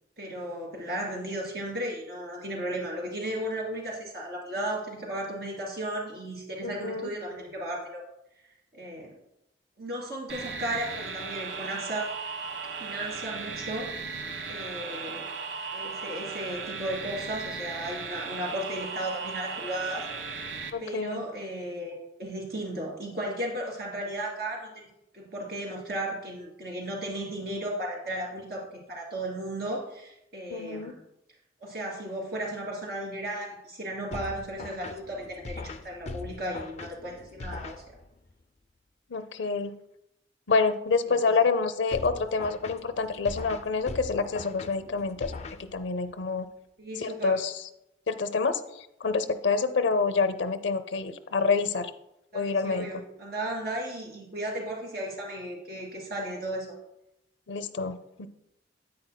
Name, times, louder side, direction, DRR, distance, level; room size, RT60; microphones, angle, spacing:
voice 1, 0.2-8.0 8.7-9.1 9.8-12.1 12.8-15.3 15.7-20.1 20.8-24.9 25.1-31.0 31.6-37.8 41.1-41.2 46.8-47.3 52.3-56.7, right 1 dB, 60° right, -2 dB, 2.9 m, -35 dB
voice 2, 6.6-7.1 20.7-21.2 30.5-30.9 39.1-39.8 40.5-45.3 45.7-46.5 47.0-47.5 48.1-51.9 52.3-53.0 57.5-58.3, left 4 dB, 85° left, 11 dB, 0.6 m, -27 dB
sound 1, 10.3-20.7, right 4 dB, 90° right, 0.9 m, -36 dB
sound 2, 34.1-38.3 41.9-46.1, left 3 dB, 35° left, 0.4 m, -41 dB
9.7 x 8.7 x 2.2 m, 0.85 s
head